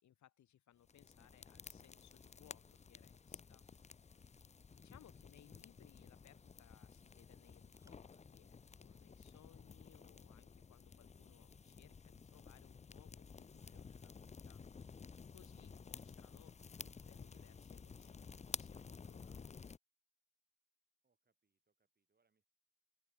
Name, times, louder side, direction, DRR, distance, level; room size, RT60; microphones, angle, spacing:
voice 1, 0.0-3.7 4.1-4.6 4.8-14.6 15.3-19.6, left 11 dB, 70° left, 2.6 m, -67 dB
sound 1, 0.8-19.8, left 5 dB, 20° left, 0.6 m, -54 dB
eating carot, 0.8-8.3, right 1 dB, 10° right, 7.9 m, -85 dB
voice 2, 21.0-22.5, right 4 dB, 30° right, 8.0 m, -86 dB
open air
cardioid pair, 90°, 30 cm